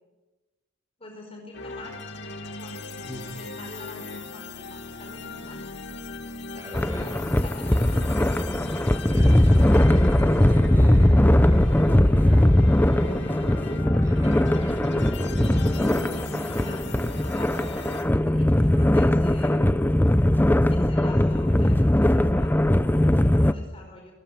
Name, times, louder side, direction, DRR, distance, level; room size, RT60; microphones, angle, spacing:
voice 1, 1.0-2.0 2.6-5.6 6.5-8.4 16.1-19.8 20.7-24.1, left 2 dB, 30° left, 2 dB, 5.0 m, -45 dB
sound 1, 1.5-18.0, left 3 dB, 65° left, 2.7 m, -39 dB
voice 2, 6.6-7.1 9.0-12.5 12.9-13.5 14.0-16.1, equal, 15° right, 1 dB, 7.8 m, -40 dB
sound 2, 6.7-23.5, left 1 dB, 10° left, 0.6 m, -20 dB
21.5 x 16.0 x 9.3 m, 1.2 s
head